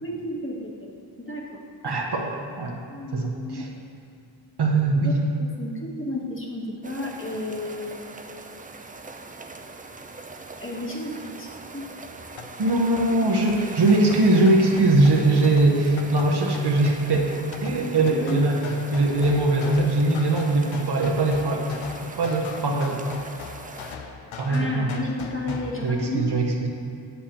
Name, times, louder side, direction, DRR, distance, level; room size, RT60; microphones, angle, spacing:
voice 1, 0.0-0.9 1.2-1.6 1.9-2.0 2.9-3.6 5.0-8.1 10.6-11.9 18.1-18.4 24.5-26.3, left 2 dB, 25° left, -2 dB, 1.2 m, -32 dB
voice 2, 1.8-2.3 2.6-2.8 3.1-3.7 4.6-5.2 12.6-17.3 17.6-18.6 18.9-21.6 22.2-23.0 24.4-25.0 25.8-26.7, right 2 dB, 55° right, 1 dB, 0.9 m, -21 dB
sound 1, 6.8-24.0, right 3 dB, 20° right, 0.4 m, -41 dB
sound 2, 12.2-25.8, left 6 dB, 90° left, 0.6 m, -40 dB
7.1 x 7.0 x 2.9 m, 2.4 s
cardioid pair, 50°, 46 cm